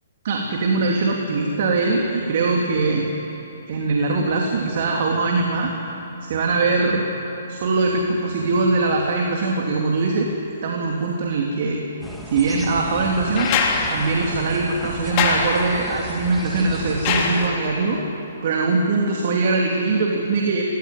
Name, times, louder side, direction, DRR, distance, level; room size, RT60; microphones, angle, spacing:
voice 1, 0.2-3.1 3.7-5.7 6.2-7.0 7.5-10.3 10.6-11.8 12.3-13.5 13.9-18.0 18.4-20.6, right 3 dB, 55° right, 0 dB, 2.8 m, -21 dB
sound 1, 12.0-17.5, left 1 dB, ahead, 2.6 m, -35 dB
sound 2, 13.4-18.0 19.5-19.6, left 5 dB, 35° left, 3.4 m, -25 dB
23.5 x 17.0 x 9.8 m, 2.9 s
hypercardioid pair, 130°, 0 cm